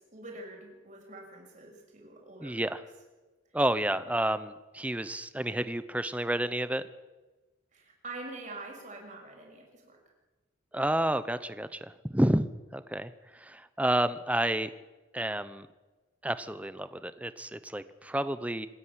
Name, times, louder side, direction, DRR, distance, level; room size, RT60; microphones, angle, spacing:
voice 1, 0.0-2.8 7.7-10.0, right 2 dB, 40° right, 0 dB, 6.8 m, -45 dB
voice 2, 2.4-2.8 3.5-6.8 10.7-12.5 12.7-14.7 15.1-15.7 16.2-18.7, right 1 dB, 5° right, 13 dB, 0.8 m, -30 dB
26.5 x 10.5 x 9.9 m, 1.2 s
head